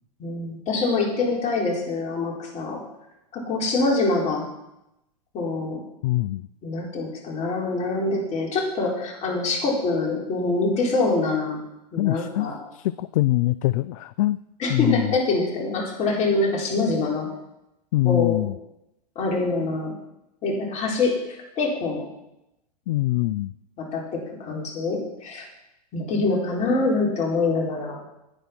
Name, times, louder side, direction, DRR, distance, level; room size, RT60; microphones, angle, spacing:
voice 1, 0.2-2.8 3.3-4.4 5.3-5.8 6.6-11.6 11.9-12.6 14.6-17.3 18.0-18.4 19.2-19.9 20.4-22.0 23.8-25.5 25.9-28.0, left 3 dB, 35° left, -1 dB, 4.2 m, -25 dB
voice 2, 6.0-6.4 12.0-14.4 14.7-15.1 17.9-18.6 22.9-23.5, left 17 dB, 55° left, 17 dB, 0.4 m, -23 dB
10.0 x 9.5 x 6.1 m, 0.88 s
hypercardioid pair, 110°, 21 cm